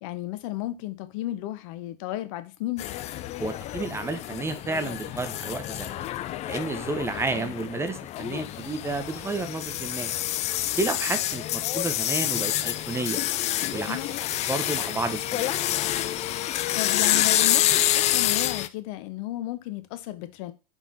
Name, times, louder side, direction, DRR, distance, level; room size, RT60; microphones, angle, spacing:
voice 1, 0.0-2.8 7.3-7.5 13.9-14.1 16.7-20.5, left 15 dB, 50° left, 0.9 m, -33 dB
sound 1, 2.8-18.7, left 13 dB, 35° left, 0.5 m, -28 dB
voice 2, 3.4-6.1 6.5-10.1 10.8-13.2 13.7-14.0 14.5-15.6, right 3 dB, 10° right, 0.8 m, -31 dB
5.7 x 4.5 x 4.1 m
figure-of-eight pair, 85°, 21 cm